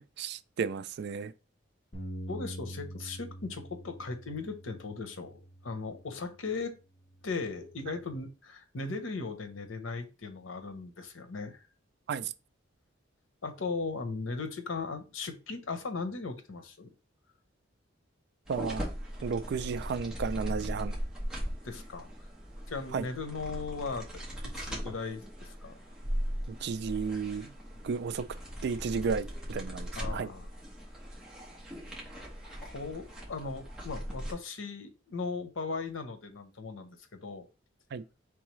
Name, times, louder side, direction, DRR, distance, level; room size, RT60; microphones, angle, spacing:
voice 1, 0.0-1.3 12.1-12.3 18.5-18.9 19.2-21.0 22.9-23.1 26.6-27.5 27.8-28.3 28.6-30.3 37.9-38.0, right 5 dB, 60° right, 0.3 m, -33 dB
Bass guitar, 1.9-6.4 7.0-8.2, right 1 dB, 40° left, 1.4 m, -45 dB
voice 2, 2.3-6.7 7.2-11.7 13.4-16.9 21.6-22.1 22.7-24.2 24.5-25.8 30.0-30.5 32.6-37.4, left 4 dB, 90° left, 0.8 m, -38 dB
sound 1, 18.5-34.3, equal, 5° right, 1.3 m, -39 dB
4.7 x 3.5 x 3.1 m
head